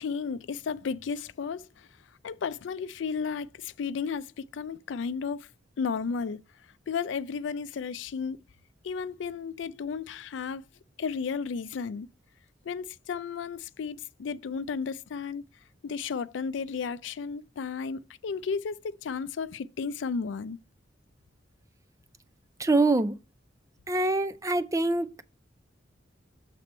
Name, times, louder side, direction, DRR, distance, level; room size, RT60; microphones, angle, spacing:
voice 1, 0.0-1.9 2.2-5.5 5.8-6.4 6.9-8.4 8.8-10.6 11.0-12.1 12.7-15.4 15.8-20.6, left 5 dB, 80° left, 0.4 m, -33 dB
voice 2, 22.6-23.1 23.9-25.2, right 2 dB, 15° right, 0.4 m, -25 dB
7.5 x 4.1 x 4.3 m
head